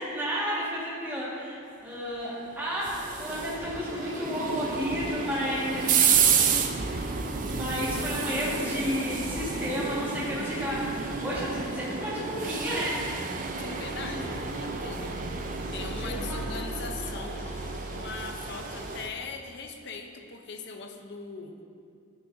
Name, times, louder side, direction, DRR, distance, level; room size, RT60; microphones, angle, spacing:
voice 1, 0.0-2.9 3.2-6.5 7.0-13.0 14.1-14.2 16.0-16.4, equal, 10° right, -9 dB, 1.7 m, -32 dB
sound 1, 2.4-19.1, right 6 dB, 40° right, 0.4 m, -30 dB
sound 2, 2.8-18.9, left 1 dB, 30° left, 1.8 m, -47 dB
voice 2, 13.6-15.2 15.7-17.5 17.9-21.6, left 4 dB, 55° left, 4 dB, 0.7 m, -40 dB
12.5 x 6.1 x 2.7 m, 2.4 s
head